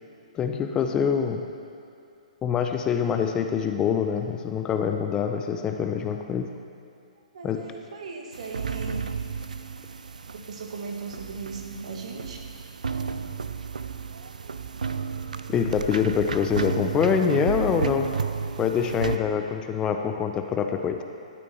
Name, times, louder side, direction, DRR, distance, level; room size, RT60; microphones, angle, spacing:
voice 1, 0.3-1.5 2.4-6.5 7.4-7.7 15.5-18.1 18.6-21.0, left 7 dB, 20° left, 5 dB, 0.5 m, -25 dB
voice 2, 7.3-9.0 10.3-12.4, right 4 dB, 60° right, 1 dB, 1.6 m, -37 dB
sound 1, 8.3-19.2, right 5 dB, 80° right, 0.5 m, -32 dB
12.5 x 8.4 x 4.2 m, 2.5 s
hypercardioid pair, 130°, 4 cm